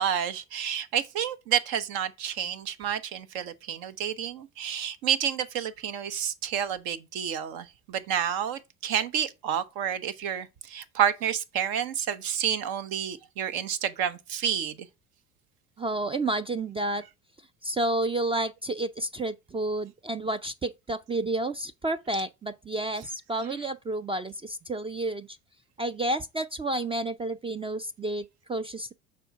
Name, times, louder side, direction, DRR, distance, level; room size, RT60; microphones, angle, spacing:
voice 1, 0.0-14.9, right 9 dB, 70° right, 1.0 m, -29 dB
voice 2, 15.8-17.0 17.6-25.3 25.8-28.9, right 2 dB, 15° right, 0.3 m, -30 dB
6.8 x 4.3 x 4.6 m
hypercardioid pair, 75°, 37 cm